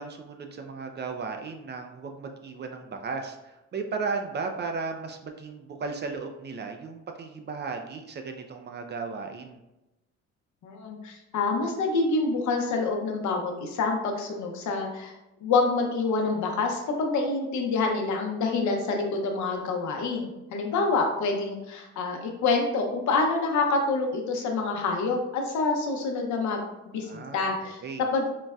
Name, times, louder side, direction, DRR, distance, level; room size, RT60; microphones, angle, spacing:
voice 1, 0.0-9.6 27.0-28.0, right 4 dB, 35° right, 5 dB, 0.4 m, -35 dB
voice 2, 10.6-15.1 15.4-27.8 28.1-28.3, left 3 dB, 70° left, 2 dB, 0.7 m, -27 dB
3.9 x 2.1 x 2.3 m, 0.96 s
cardioid pair, 90°, 30 cm